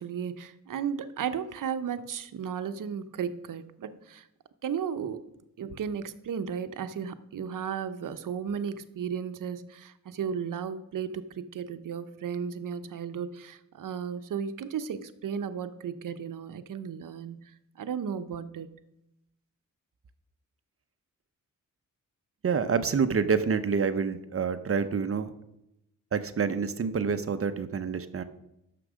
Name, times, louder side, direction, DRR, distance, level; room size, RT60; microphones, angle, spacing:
voice 1, 0.0-4.3 4.6-5.2 5.6-18.7, right 7 dB, 75° right, 11 dB, 0.8 m, -34 dB
voice 2, 22.4-25.3 26.1-28.2, right 5 dB, 45° right, 10 dB, 0.7 m, -27 dB
9.9 x 6.8 x 6.2 m, 0.84 s
wide cardioid pair, 125°, 33 cm